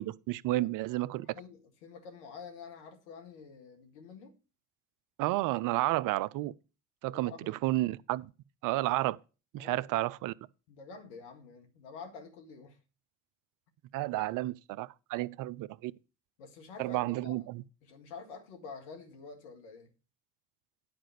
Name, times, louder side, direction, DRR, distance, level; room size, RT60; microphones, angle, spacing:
voice 1, 0.0-1.3 5.2-6.5 7.0-8.3 8.6-9.2 9.5-10.3 13.9-15.9 16.8-17.6, right 17 dB, 65° right, 0.6 m, -31 dB
voice 2, 1.1-4.4 7.1-7.5 9.6-9.8 10.7-12.8 16.4-17.4 17.8-19.9, left 5 dB, 80° left, 1.8 m, -48 dB
10.0 x 5.0 x 6.5 m
hypercardioid pair, 55°, 35 cm